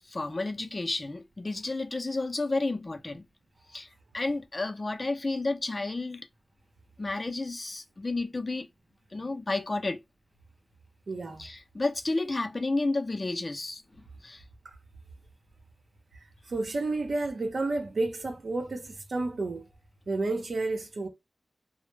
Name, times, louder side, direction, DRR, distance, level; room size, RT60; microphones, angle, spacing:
voice 1, 0.0-3.3 3.7-6.3 7.0-8.7 9.1-10.0 11.4-14.4, left 2 dB, 40° left, 0.4 m, -31 dB
voice 2, 11.1-11.5 16.1-19.7 20.1-21.1, right 2 dB, 75° right, 0.7 m, -31 dB
2.1 x 2.0 x 3.1 m
wide cardioid pair, 60°, 0 cm